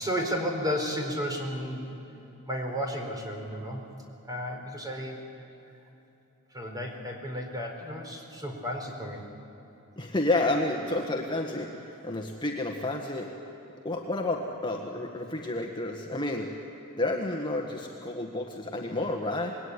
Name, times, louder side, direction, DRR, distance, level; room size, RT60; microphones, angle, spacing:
voice 1, 0.0-1.9 2.4-3.8 4.2-5.2 6.5-9.2, equal, 20° right, 2 dB, 4.3 m, -33 dB
voice 2, 10.0-13.3 13.8-16.5 17.0-19.6, left 2 dB, 20° left, 0 dB, 1.6 m, -30 dB
27.0 x 21.0 x 9.8 m, 2.9 s
head